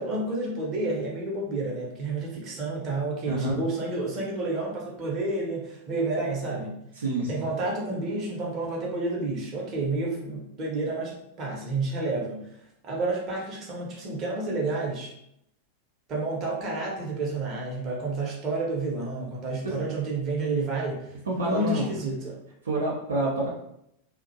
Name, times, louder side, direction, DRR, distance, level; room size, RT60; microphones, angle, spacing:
voice 1, 0.0-6.8 7.3-12.4 12.8-15.1 16.1-22.4, right 2 dB, 30° right, -3 dB, 0.8 m, -30 dB
voice 2, 7.0-7.4 19.6-19.8 21.3-21.9 22.6-23.5, right 2 dB, 70° right, -4 dB, 0.5 m, -28 dB
2.5 x 2.1 x 2.6 m, 0.77 s
figure-of-eight pair, 90°, 0 cm